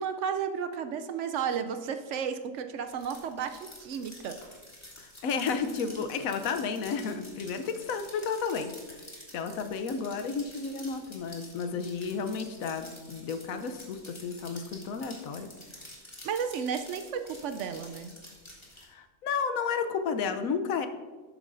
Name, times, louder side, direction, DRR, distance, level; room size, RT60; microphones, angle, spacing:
voice 1, 0.0-4.4 16.2-18.1, right 7 dB, 70° right, 8 dB, 0.8 m, -33 dB
sound 1, 2.8-18.8, left 1 dB, 20° left, 1.6 m, -49 dB
voice 2, 5.0-8.7 9.3-15.5 18.9-20.9, left 5 dB, 85° left, 9 dB, 1.1 m, -32 dB
12.0 x 8.0 x 2.6 m, 1.3 s
omnidirectional pair, 1.4 m